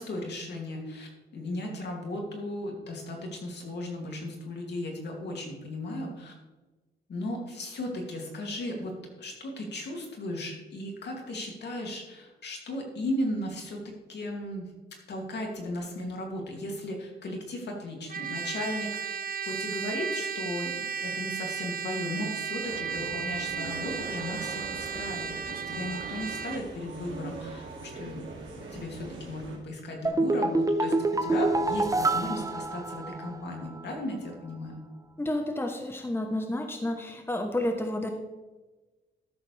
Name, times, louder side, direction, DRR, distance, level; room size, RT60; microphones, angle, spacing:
voice 1, 0.0-6.3 7.1-13.8 14.1-14.7 15.1-19.2 19.5-34.8, left 1 dB, 65° left, 0 dB, 2.7 m, -36 dB
Trumpet, 18.1-26.6, right 7 dB, 50° right, 0.8 m, -34 dB
sound 1, 22.6-29.6, right 3 dB, 85° right, 2.6 m, -42 dB
sound 2, 30.0-33.5 33.8-33.9, right 2 dB, 20° right, 0.8 m, -26 dB
voice 2, 35.2-38.1, left 1 dB, 10° left, 4 dB, 1.1 m, -30 dB
13.0 x 7.2 x 3.4 m, 1.2 s
cardioid pair, 80°, 19 cm